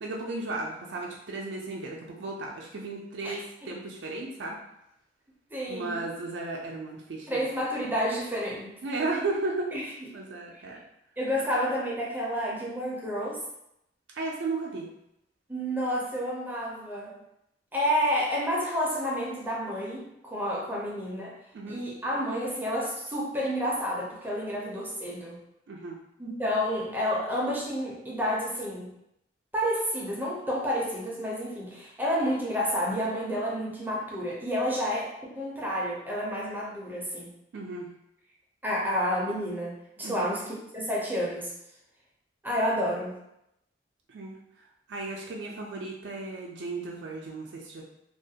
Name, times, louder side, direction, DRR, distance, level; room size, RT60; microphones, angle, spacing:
voice 1, 0.0-4.6 5.7-7.4 8.8-9.7 10.1-10.8 14.1-14.9 20.7-20.8 21.5-21.8 25.7-26.0 37.5-37.9 40.0-40.3 44.1-44.3 44.9-47.8, right 3 dB, 75° right, -2 dB, 0.4 m, -34 dB
voice 2, 3.2-3.7 5.5-6.0 7.3-8.8 9.7-10.1 10.5-10.6 11.2-13.4 15.5-17.2 17.7-21.4 21.7-25.4 26.2-28.9 29.5-37.3 38.6-41.5 42.4-43.2, equal, 10° right, -5 dB, 0.5 m, -30 dB
2.4 x 2.2 x 2.7 m, 0.81 s
head